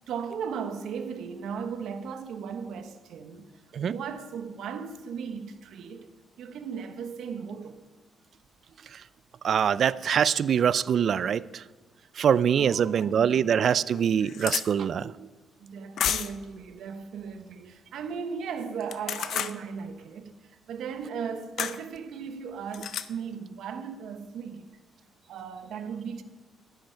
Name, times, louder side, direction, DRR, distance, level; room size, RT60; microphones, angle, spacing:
voice 1, 0.0-3.5 3.8-6.1 6.4-7.8 12.6-13.5 15.6-24.7 25.3-26.2, right 6 dB, 75° right, 1.0 m, -37 dB
voice 2, 9.4-11.4 12.2-15.1, right 8 dB, 60° right, 0.4 m, -24 dB
sound 1, 13.0-13.1 13.6-13.7 13.9-14.7 16.0-16.4 18.8-19.6 21.6-21.8 22.7-23.1, left 9 dB, 70° left, 0.6 m, -30 dB
11.5 x 10.5 x 4.5 m
cardioid pair, 90°, 0 cm